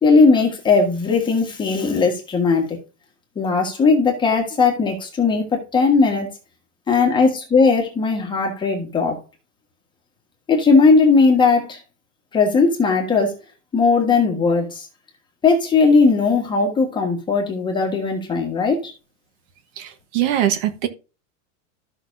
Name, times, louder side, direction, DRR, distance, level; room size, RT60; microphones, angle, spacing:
voice 1, 0.0-2.6 3.3-6.3 6.9-9.2 10.5-11.8 12.3-13.3 13.7-14.9 15.4-18.9, left 4 dB, 10° left, 1.5 m, -17 dB
voice 2, 19.8-20.9, right 11 dB, 40° right, 1.2 m, -22 dB
14.0 x 5.9 x 2.7 m
supercardioid pair, 170°, 40 cm